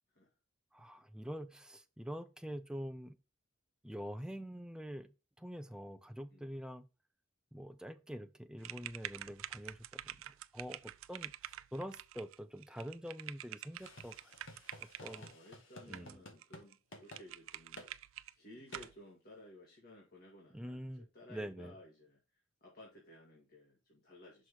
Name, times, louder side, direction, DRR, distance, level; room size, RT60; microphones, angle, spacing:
voice 1, 0.7-3.2 3.8-6.9 7.5-10.2 10.5-14.3 15.0-15.3 15.9-16.2 20.5-21.0 21.3-21.8, equal, 5° right, 0.5 m, -45 dB
sound 1, 8.6-15.3 15.9-16.4 16.7-16.8 17.1-18.3 18.7-19.0, right 12 dB, 85° right, 0.4 m, -47 dB
sound 2, 13.8-16.7 16.9-17.2 17.8-17.9 18.7-18.9, left 1 dB, 70° left, 1.8 m, -53 dB
voice 2, 15.0-22.2 22.6-24.5, left 1 dB, 50° left, 2.0 m, -57 dB
6.1 x 3.2 x 5.8 m
head